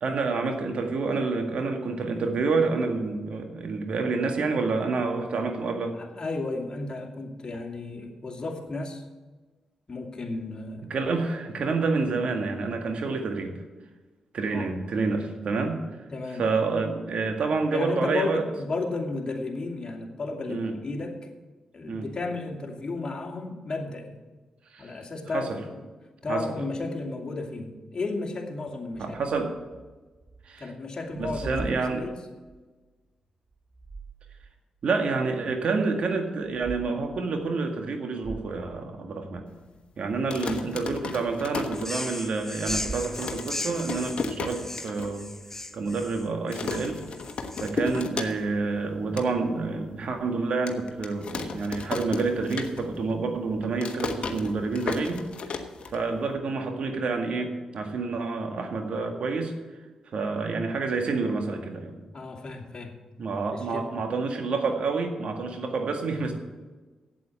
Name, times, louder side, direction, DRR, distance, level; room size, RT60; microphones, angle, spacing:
voice 1, 0.0-5.9 10.9-13.5 14.3-15.8 16.4-18.4 20.5-20.7 21.9-22.1 24.7-25.0 25.3-25.6 26.3-26.4 29.0-29.5 30.5-30.7 31.2-32.1 34.8-39.4 40.0-45.3 45.7-47.0 47.6-55.3 55.9-59.5 60.1-62.0 63.2-66.3, right 4 dB, 65° right, 4 dB, 1.9 m, -28 dB
voice 2, 6.0-9.0 9.9-10.8 14.5-14.7 16.1-16.5 17.7-21.2 21.7-24.2 24.8-25.5 26.2-29.2 30.6-32.2 62.1-63.0 63.5-64.0, left 3 dB, 40° left, 1 dB, 2.6 m, -33 dB
sound 1, 28.9-30.6 30.9-32.6 33.5-34.6 35.0-35.1 36.4-36.8 37.3-37.4 37.8-37.9 38.2-39.5 42.5-43.6, right 2 dB, 10° right, 2.5 m, -42 dB
sound 2, 40.1-42.4 42.7-42.8 43.0-45.1 45.5-45.6 45.8-46.1 46.5-48.7 48.9-49.3 49.8-49.9 50.7-53.1 53.4-56.3, left 4 dB, 60° left, 1.2 m, -34 dB
sound 3, 41.7-48.0, left 2 dB, 20° left, 0.5 m, -37 dB
8.4 x 8.3 x 8.8 m, 1.3 s
supercardioid pair, 50°, 2 cm